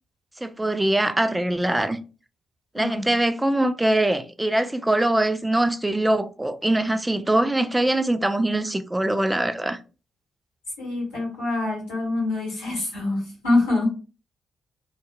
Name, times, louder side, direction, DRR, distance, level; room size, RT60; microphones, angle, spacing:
voice 1, 0.4-2.0 2.7-9.8, right 1 dB, 15° right, 0.4 m, -23 dB
voice 2, 2.7-3.1 10.8-13.9, left 2 dB, 90° left, 1.5 m, -25 dB
2.7 x 2.2 x 2.2 m
hypercardioid pair, 40°, 0 cm